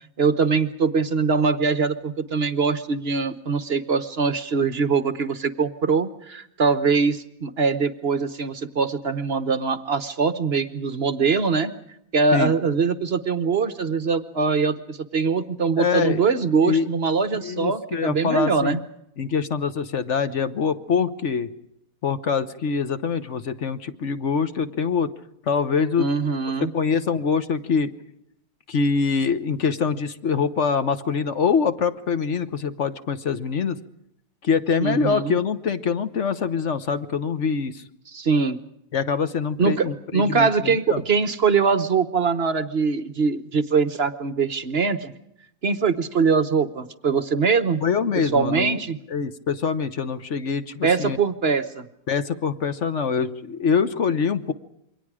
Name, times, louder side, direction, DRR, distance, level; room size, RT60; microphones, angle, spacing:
voice 1, 0.2-11.7 12.1-18.8 26.0-26.7 34.8-35.4 38.1-38.6 39.6-45.1 45.6-47.8 48.3-49.0 50.8-51.9, right 5 dB, 40° right, 13 dB, 1.0 m, -22 dB
voice 2, 15.8-16.2 16.6-16.9 17.4-18.8 19.2-21.5 22.0-25.1 25.4-26.1 26.7-27.9 28.7-33.8 34.4-37.8 38.9-41.0 47.8-48.8 49.1-51.2 52.1-54.5, left 5 dB, 45° left, 12 dB, 1.1 m, -24 dB
28.0 x 23.5 x 4.9 m, 0.77 s
omnidirectional pair, 2.0 m